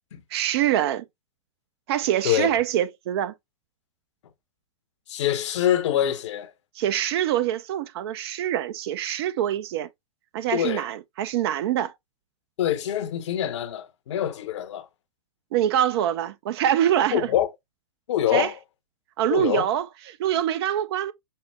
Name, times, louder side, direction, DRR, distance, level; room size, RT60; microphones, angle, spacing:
voice 1, 0.3-1.1 1.9-3.3 6.8-9.9 10.3-11.9 15.5-17.3 18.3-18.5 19.2-21.1, right 11 dB, 50° right, 0.5 m, -24 dB
voice 2, 5.1-6.5 10.5-10.9 12.6-14.9 17.1-17.5 18.1-18.5 19.3-19.7, left 11 dB, 60° left, 0.8 m, -25 dB
5.5 x 2.0 x 3.3 m
figure-of-eight pair, 110°, 17 cm